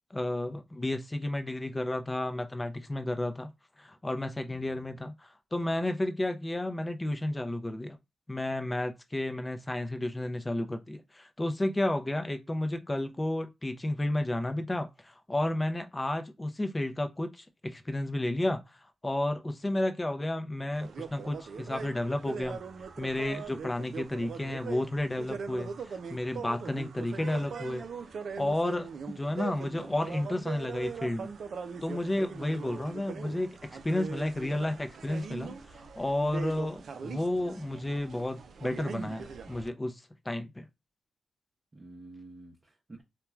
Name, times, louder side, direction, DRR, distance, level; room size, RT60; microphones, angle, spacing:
voice 1, 0.1-3.5 3.8-8.0 8.3-22.6 23.0-27.8 28.4-28.9 29.2-31.3 31.8-40.6, left 1 dB, 20° left, 0.5 m, -32 dB
voice 2, 4.4-5.0 27.2-27.6 41.7-43.0, right 2 dB, 35° right, 0.7 m, -51 dB
sound 1, 20.7-39.7, right 6 dB, 70° right, 0.4 m, -41 dB
3.0 x 2.2 x 2.2 m
cardioid pair, 65°, 0 cm